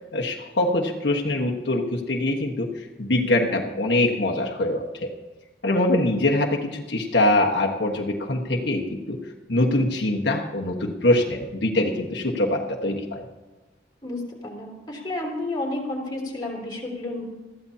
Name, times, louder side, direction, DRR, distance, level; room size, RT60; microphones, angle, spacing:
voice 1, 0.1-2.7 3.0-5.1 5.6-9.2 9.5-13.2, left 1 dB, 75° left, -1 dB, 1.3 m, -23 dB
voice 2, 14.0-17.2, left 2 dB, 20° left, -3 dB, 3.1 m, -31 dB
20.5 x 14.0 x 2.8 m, 1.2 s
head